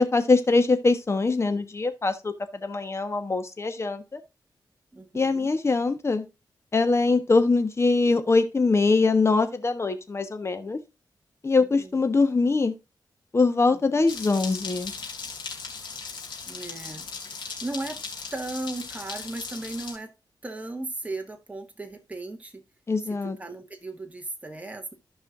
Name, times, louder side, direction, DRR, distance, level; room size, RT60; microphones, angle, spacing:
voice 1, 0.0-2.3 2.6-4.2 5.1-6.2 6.7-10.8 11.4-12.7 13.3-14.9 22.9-23.4, left 3 dB, 35° left, 1.3 m, -23 dB
voice 2, 4.9-5.5 11.6-12.0 13.7-14.0 16.4-18.0 18.3-20.1 20.4-22.6 23.2-24.9, right 2 dB, 20° right, 1.7 m, -36 dB
sound 1, 14.1-19.9, left 5 dB, 85° left, 2.8 m, -38 dB
14.0 x 5.6 x 2.6 m
wide cardioid pair, 115°, 8 cm